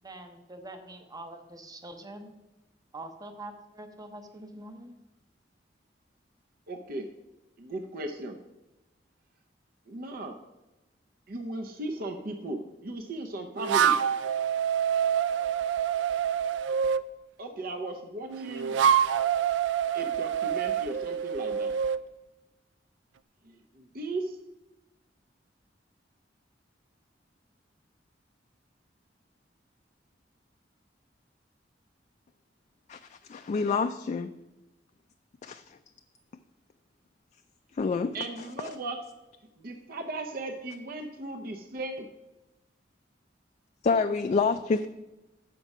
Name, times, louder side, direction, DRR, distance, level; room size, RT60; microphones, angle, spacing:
voice 1, 0.0-2.3 2.9-4.9, right 2 dB, 20° right, 5 dB, 0.8 m, -44 dB
voice 2, 6.7-7.1 7.6-8.4 9.9-10.4 11.3-14.1 17.4-18.8 19.9-21.7 23.4-24.4 38.1-39.0 39.6-42.1, right 2 dB, 55° right, 4 dB, 0.7 m, -37 dB
sound 1, 13.6-17.1 18.3-22.0, right 8 dB, 80° right, 0.3 m, -26 dB
voice 3, 33.3-34.3 37.8-38.2 43.8-44.9, left 4 dB, 40° left, 8 dB, 0.3 m, -26 dB
7.5 x 5.9 x 5.4 m, 1.0 s
head